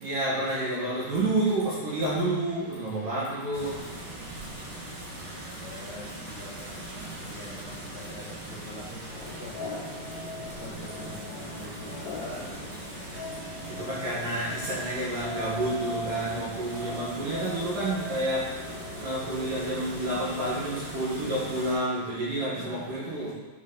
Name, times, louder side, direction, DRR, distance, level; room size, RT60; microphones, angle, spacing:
voice 1, 0.0-3.8 13.8-18.5 19.0-23.3, right 1 dB, 60° right, -7 dB, 2.5 m, -29 dB
sound 1, 3.5-21.8, right 1 dB, 80° right, 0.9 m, -41 dB
voice 2, 5.1-9.8 10.4-12.5 22.4-22.9, left 1 dB, 40° left, -12 dB, 1.3 m, -45 dB
sound 2, 9.1-20.9, left 2 dB, 80° left, 3.2 m, -41 dB
9.9 x 4.6 x 3.8 m, 1.4 s
omnidirectional pair, 5.2 m